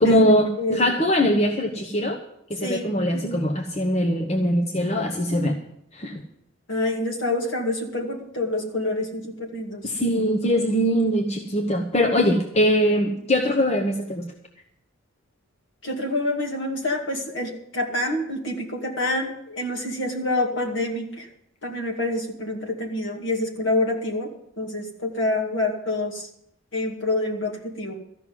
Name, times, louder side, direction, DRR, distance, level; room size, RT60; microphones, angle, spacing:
voice 1, 0.0-2.2 2.5-5.6 5.9-6.1 9.8-14.3, equal, 30° left, 3 dB, 0.9 m, -22 dB
voice 2, 0.6-0.9 2.6-2.9 6.7-9.9 15.8-21.3 21.6-26.3 26.7-27.9, left 2 dB, 55° left, 2 dB, 2.3 m, -27 dB
14.0 x 6.1 x 9.4 m, 0.75 s
head